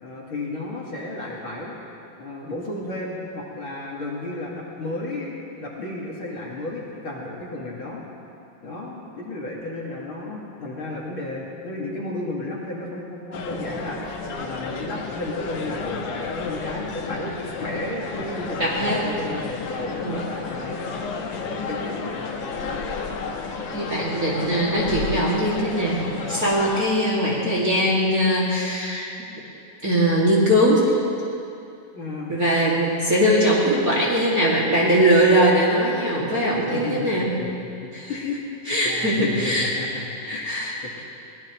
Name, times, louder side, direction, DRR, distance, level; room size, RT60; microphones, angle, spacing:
voice 1, 0.0-1.8 2.2-8.0 8.6-14.0 14.4-20.8 21.4-22.3 31.9-32.4 36.7-37.1 37.4-37.5 38.1-38.4 38.8-40.5 40.8-41.0, left 2 dB, 45° left, -5 dB, 2.5 m, -33 dB
sound 1, 13.3-26.8, left 4 dB, 75° left, 2.7 m, -32 dB
voice 2, 18.6-19.0 20.0-20.2 23.7-29.1 29.8-31.0 32.3-37.3 37.9-38.1 38.7-39.7 40.2-41.0, equal, 30° right, -5 dB, 2.4 m, -21 dB
24.0 x 19.0 x 3.1 m, 2.6 s
omnidirectional pair, 3.6 m